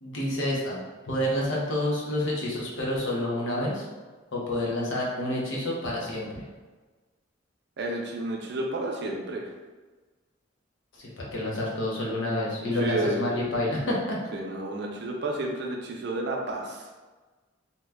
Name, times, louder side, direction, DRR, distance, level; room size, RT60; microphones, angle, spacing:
voice 1, 0.0-0.8 1.1-3.8 4.3-6.4 10.9-14.2, left 1 dB, 90° left, -4 dB, 0.9 m, -28 dB
voice 2, 7.8-9.5 12.7-13.4 14.3-16.9, right 2 dB, 65° right, 0 dB, 0.5 m, -31 dB
2.8 x 2.2 x 3.4 m, 1.3 s
head